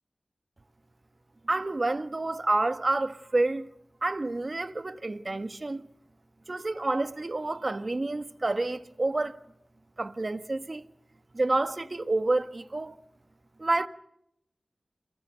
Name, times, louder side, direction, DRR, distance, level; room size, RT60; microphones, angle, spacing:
voice 1, 1.4-3.7 4.0-5.8 6.5-9.4 10.0-10.8 11.3-13.0 13.6-13.9, right 2 dB, 45° right, 1.6 m, -29 dB
29.0 x 21.5 x 6.5 m
cardioid pair, 45°, 0 cm